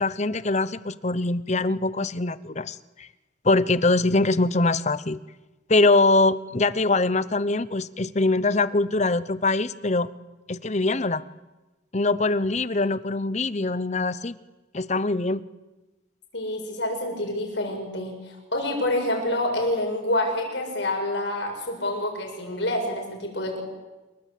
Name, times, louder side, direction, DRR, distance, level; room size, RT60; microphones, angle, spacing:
voice 1, 0.0-3.1 3.4-5.2 5.7-10.1 10.5-11.2 11.9-14.3 14.7-15.4, left 2 dB, 35° left, 16 dB, 0.9 m, -23 dB
voice 2, 16.3-23.6, left 1 dB, 65° left, 3 dB, 7.4 m, -27 dB
27.5 x 22.5 x 8.5 m, 1.1 s
head